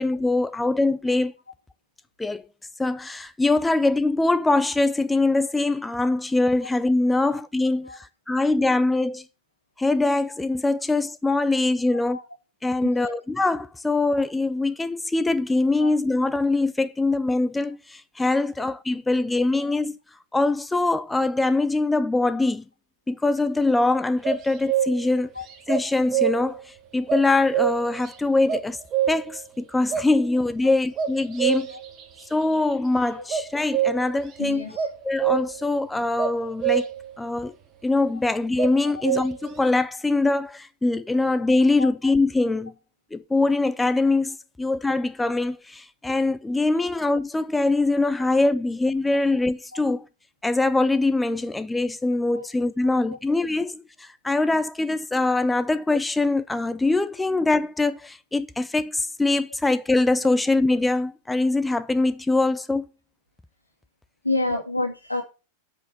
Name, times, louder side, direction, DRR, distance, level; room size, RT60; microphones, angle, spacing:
voice 1, 0.0-1.3 2.2-2.4 2.8-9.2 9.8-12.2 12.6-20.0 20.3-22.6 23.1-25.3 25.7-28.8 29.1-31.7 32.3-34.6 35.0-36.9 37.2-37.5 37.8-42.7 43.1-50.1 50.4-62.9, left 2 dB, 10° left, 0.5 m, -23 dB
voice 2, 12.8-13.2 15.8-15.9 25.4-25.5 34.4-34.9 38.8-38.9 41.8-41.9 49.7-49.8 52.3-52.5 53.1-53.2 64.2-65.2, left 2 dB, 85° left, 2.2 m, -28 dB
sound 1, 24.2-25.2 25.7-26.6 27.1-28.1 28.5-29.4 29.9-30.1 31.0-32.0 33.3-34.2 34.8-35.7 36.2-37.1 38.6-39.5, right 9 dB, 30° right, 1.5 m, -25 dB
8.3 x 5.2 x 7.2 m
figure-of-eight pair, 90°, 0 cm